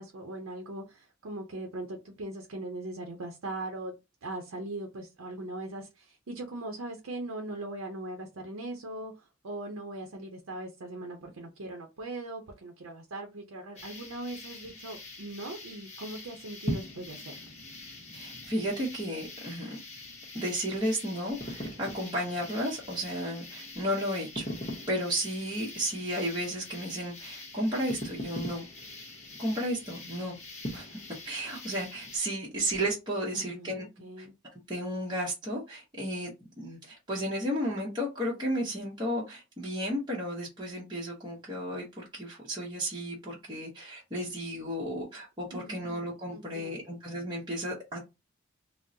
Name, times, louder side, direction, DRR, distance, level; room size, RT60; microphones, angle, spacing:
voice 1, 0.0-3.9 4.2-9.1 9.4-17.4 33.3-34.3 45.5-46.0 46.3-46.8, right 2 dB, 85° right, 0.6 m, -40 dB
sound 1, 13.8-32.2, left 1 dB, 30° left, 0.8 m, -42 dB
voice 2, 18.1-19.8 20.3-24.4 24.9-28.7 29.4-30.4 30.7-31.0 31.2-33.8 34.2-34.3 34.7-48.0, equal, 20° right, 0.8 m, -33 dB
3.6 x 2.0 x 2.7 m
head